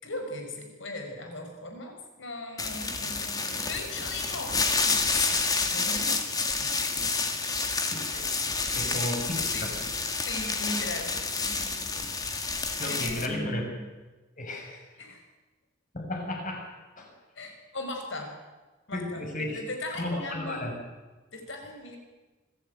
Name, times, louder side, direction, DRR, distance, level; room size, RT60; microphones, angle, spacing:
voice 1, 0.0-4.6 4.8-6.9 7.3-7.6 8.4-9.1 9.5-9.7 10.2-12.1 12.9-13.8 15.0-15.2 17.4-18.3 18.9-20.7 21.3-22.0, left 2 dB, 65° left, 4 dB, 5.5 m, -38 dB
sound 1, 2.6-13.3, left 4 dB, 20° left, 1.9 m, -29 dB
voice 2, 7.9-9.7 12.8-13.7 14.4-14.8 15.9-16.7 17.0-17.1 18.9-19.6 19.9-20.8, left 1 dB, 40° left, 1 dB, 6.5 m, -34 dB
25.0 x 15.5 x 9.2 m, 1.2 s
head